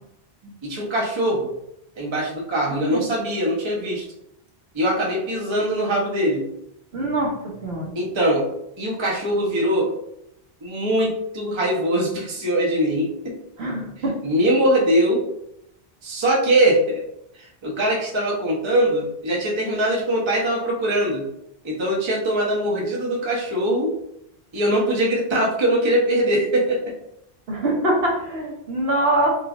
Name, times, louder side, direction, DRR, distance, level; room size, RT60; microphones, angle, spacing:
voice 1, 0.6-1.5 2.0-4.0 4.7-6.5 7.9-8.5 8.8-9.9 10.6-13.4 14.2-15.3 16.0-17.1 17.3-21.3 21.6-23.9 24.5-26.9, right 1 dB, 30° right, -3 dB, 0.7 m, -22 dB
voice 2, 2.7-3.0 6.9-7.3 7.6-7.9 13.6-14.2 27.5-29.4, right 1 dB, 75° right, -2 dB, 1.0 m, -23 dB
3.2 x 2.4 x 2.4 m, 0.77 s
omnidirectional pair, 1.1 m